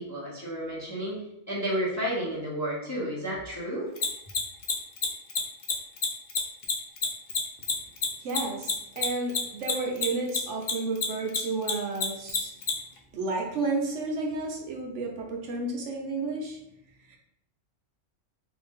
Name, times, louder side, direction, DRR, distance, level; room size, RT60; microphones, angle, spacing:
voice 1, 0.0-3.9, equal, 15° left, -6 dB, 0.7 m, -32 dB
Mechanisms, 4.0-10.7 11.0-12.7, left 6 dB, 55° left, 0.5 m, -27 dB
voice 2, 8.2-12.5 13.1-16.6 17.1-17.2, right 3 dB, 70° right, 0 dB, 1.0 m, -31 dB
3.3 x 2.6 x 3.6 m, 0.78 s
omnidirectional pair, 1.3 m